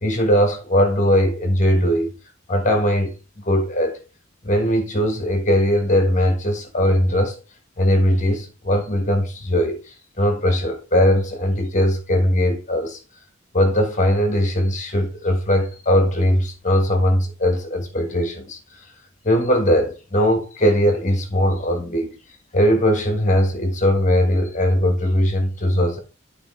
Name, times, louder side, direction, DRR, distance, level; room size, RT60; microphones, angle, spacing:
voice 1, 0.0-2.1 2.5-3.1 3.4-4.0 4.4-7.4 7.8-13.0 13.5-18.6 19.2-22.2 22.5-26.0, equal, 40° left, 1.4 m, -19 dB
11.5 x 4.4 x 3.2 m
head